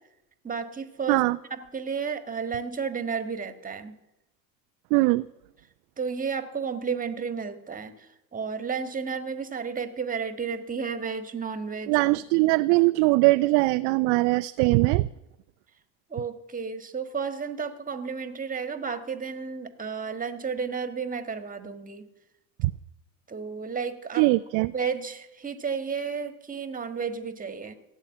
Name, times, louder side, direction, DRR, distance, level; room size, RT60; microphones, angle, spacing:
voice 1, 0.4-4.0 6.0-12.0 16.1-22.1 23.3-24.3 24.7-27.7, right 6 dB, 15° right, 9 dB, 1.5 m, -32 dB
voice 2, 1.1-1.4 4.9-5.3 11.9-15.1 22.6-22.7 24.2-24.7, right 22 dB, 40° right, 13 dB, 0.4 m, -21 dB
15.5 x 8.2 x 9.6 m, 0.93 s
hypercardioid pair, 80°, 48 cm